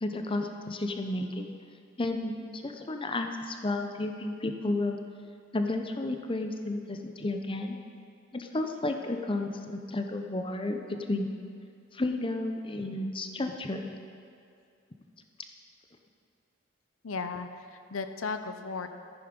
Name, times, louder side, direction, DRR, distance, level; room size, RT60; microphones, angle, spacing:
voice 1, 0.0-1.5 2.0-5.0 5.5-7.8 8.3-11.3 11.9-13.9, left 2 dB, 25° left, 5 dB, 0.7 m, -32 dB
voice 2, 17.0-18.9, left 4 dB, 90° left, 8 dB, 0.7 m, -35 dB
14.0 x 9.9 x 5.3 m, 2.4 s
head